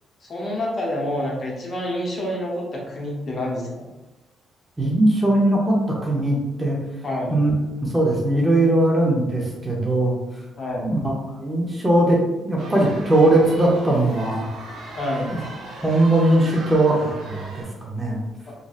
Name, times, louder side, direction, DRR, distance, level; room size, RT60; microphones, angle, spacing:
voice 1, 0.3-3.9 7.0-7.4 10.6-10.9 15.0-15.3 18.5-18.6, left 1 dB, 45° left, -3 dB, 0.9 m, -27 dB
voice 2, 4.8-6.8 7.3-7.5 7.8-10.4 10.8-11.0 11.4-14.5 15.3-15.4 15.8-18.2, right 1 dB, 20° right, -2 dB, 0.6 m, -20 dB
sound 1, 12.6-17.6, right 2 dB, 75° right, 0.7 m, -38 dB
3.1 x 2.6 x 2.4 m, 1.0 s
cardioid pair, 90°, 0 cm